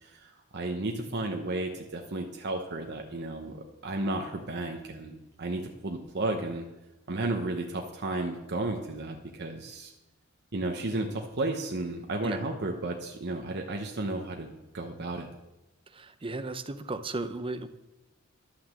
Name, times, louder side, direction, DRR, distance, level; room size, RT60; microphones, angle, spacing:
voice 1, 0.0-6.6 7.1-9.9 10.5-15.3, right 2 dB, 50° right, 2 dB, 0.9 m, -33 dB
voice 2, 15.9-17.7, right 2 dB, 25° right, 10 dB, 0.6 m, -35 dB
12.0 x 6.0 x 7.6 m, 1.0 s
head